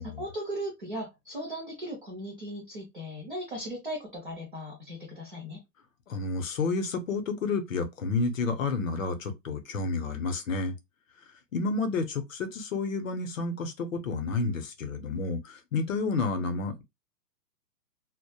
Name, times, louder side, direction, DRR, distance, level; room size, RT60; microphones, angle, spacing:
voice 1, 0.0-5.6, equal, 35° right, 0.5 m, -37 dB
voice 2, 6.1-10.8 11.5-16.8, left 3 dB, 55° left, 0.6 m, -30 dB
2.2 x 2.1 x 2.7 m
hypercardioid pair, 175°, 50 cm